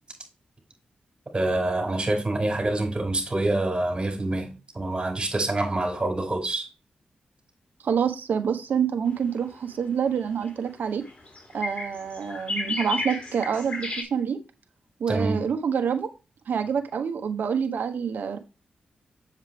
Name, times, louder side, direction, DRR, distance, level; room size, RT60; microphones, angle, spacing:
voice 1, 1.3-4.5 4.7-6.7 15.1-15.4, right 2 dB, 30° right, 5.3 m, -26 dB
voice 2, 7.8-11.0 11.5-14.4 15.0-16.1 16.5-18.4, right 7 dB, 80° right, 1.3 m, -27 dB
sound 1, 10.2-14.0, left 2 dB, 40° left, 4.4 m, -32 dB
8.0 x 7.5 x 3.5 m
cardioid pair, 55°, 3 cm